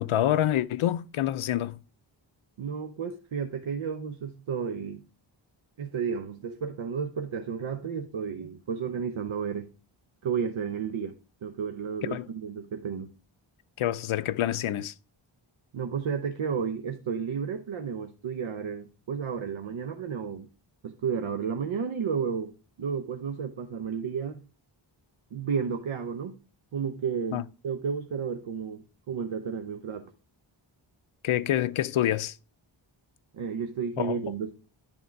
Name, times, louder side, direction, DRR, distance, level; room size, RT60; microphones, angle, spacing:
voice 1, 0.0-1.8 12.0-12.3 13.8-14.9 27.3-27.4 31.2-32.4 34.0-34.2, left 12 dB, 85° left, 0.6 m, -27 dB
voice 2, 2.6-5.0 5.8-9.7 10.2-11.1 11.4-13.1 15.7-20.5 20.8-24.4 25.3-26.4 26.7-30.1 33.3-34.5, right 6 dB, 75° right, 0.8 m, -32 dB
10.5 x 3.7 x 4.5 m
wide cardioid pair, 140°, 48 cm